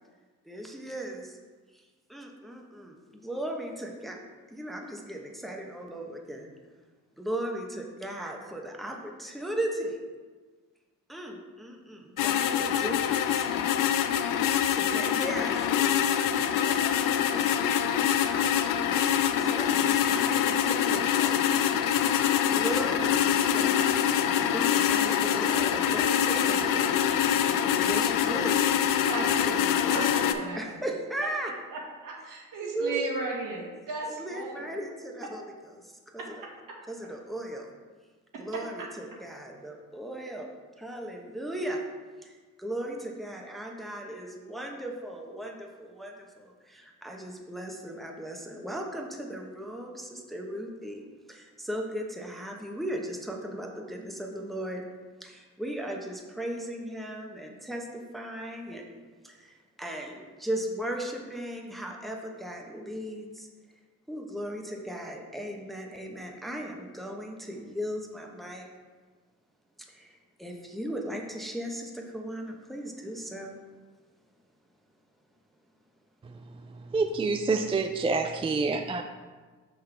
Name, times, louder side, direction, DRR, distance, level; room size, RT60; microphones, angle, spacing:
voice 1, 0.4-1.4 1.7-4.2 4.5-6.5 7.2-10.0 11.1-13.5 14.7-18.7 19.4-21.6 22.5-27.0 27.8-28.6 30.6-31.5 32.6-33.0 34.2-35.4 35.7-36.2 36.9-37.7 38.4-40.5 40.8-41.8 42.2-54.8 55.2-58.9 59.2-63.5 64.1-68.7 69.8-73.6, right 1 dB, ahead, 1 dB, 0.9 m, -37 dB
sound 1, 12.2-30.3, left 9 dB, 70° left, 0.5 m, -25 dB
voice 2, 29.1-30.6 31.7-34.7, right 3 dB, 70° right, -2 dB, 1.7 m, -35 dB
voice 3, 76.9-79.0, right 4 dB, 15° right, 6 dB, 0.3 m, -27 dB
6.0 x 5.4 x 3.3 m, 1.4 s
supercardioid pair, 70°, 34 cm